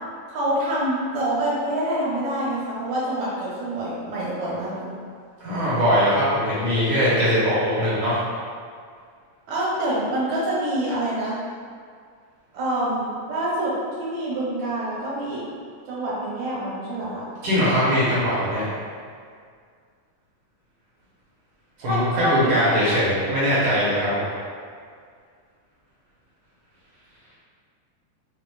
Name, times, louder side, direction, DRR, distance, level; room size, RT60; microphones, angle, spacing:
voice 1, 0.3-4.9 9.5-11.4 12.5-13.7 14.0-15.4 15.9-17.3 21.8-22.8, right 1 dB, 90° right, -8 dB, 2.8 m, -26 dB
voice 2, 5.4-8.2 17.4-18.6 21.8-24.2, equal, 65° right, -10 dB, 1.7 m, -21 dB
5.8 x 3.0 x 2.2 m, 2.1 s
omnidirectional pair, 3.5 m